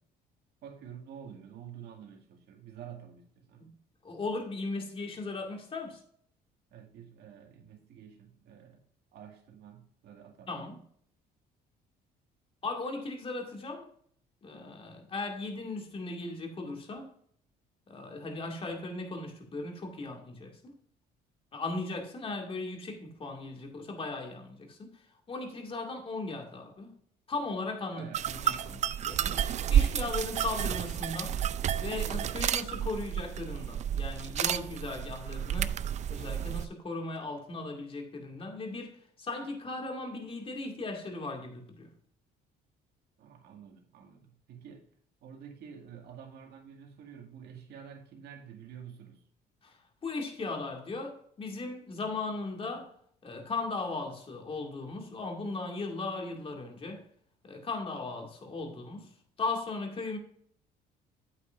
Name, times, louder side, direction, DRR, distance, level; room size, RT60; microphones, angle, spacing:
voice 1, 0.6-3.7 6.7-8.8 9.1-10.5 27.9-28.2 43.2-44.9 45.2-49.2, right 8 dB, 75° right, 2.0 m, -49 dB
voice 2, 4.0-6.0 10.5-10.8 12.6-13.9 14.4-17.1 17.9-20.8 21.5-26.9 27.3-31.4 31.8-35.8 36.1-41.9 49.6-52.9 53.2-57.0 57.4-60.2, left 3 dB, 35° left, 2.2 m, -37 dB
sound 1, 28.1-36.7, right 10 dB, 45° right, 0.4 m, -31 dB
8.6 x 8.3 x 2.5 m
cardioid pair, 110°, 17 cm